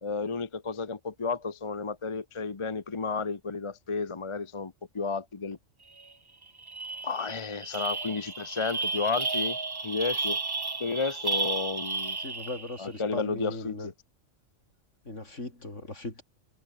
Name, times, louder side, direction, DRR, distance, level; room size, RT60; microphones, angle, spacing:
voice 1, 0.0-5.6 7.0-9.6 9.8-10.4 10.8-12.2 12.8-13.9, left 4 dB, 25° left, 0.8 m, -32 dB
sound 1, 6.0-6.1 6.4-12.8, right 3 dB, 20° right, 0.7 m, -33 dB
voice 2, 12.2-13.9 15.1-16.2, left 2 dB, 65° left, 5.1 m, -38 dB
omnidirectional pair, 1.3 m